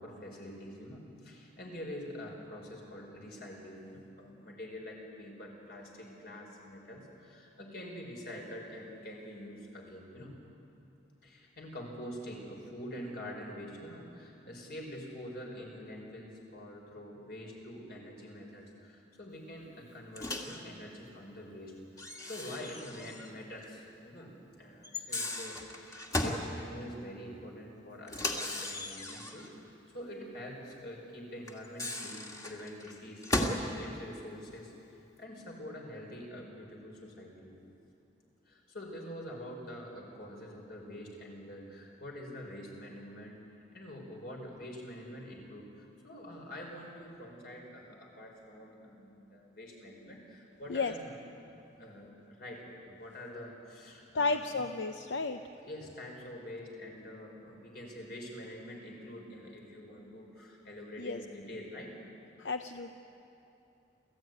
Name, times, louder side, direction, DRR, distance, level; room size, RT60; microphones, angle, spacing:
voice 1, 0.0-10.3 11.2-33.2 33.7-37.5 38.4-43.4 43.7-51.2 51.8-54.6 55.6-61.9, left 1 dB, 60° left, 0 dB, 5.0 m, -46 dB
Microwave oven, 20.2-20.6 22.0-23.3 23.6-23.7 24.8-26.5 28.1-29.5 31.5-33.7, left 1 dB, 20° left, 2.0 m, -36 dB
voice 2, 54.1-55.4 61.0-61.2 62.4-62.9, left 3 dB, 85° left, 7 dB, 0.7 m, -32 dB
28.5 x 14.5 x 9.4 m, 2.8 s
head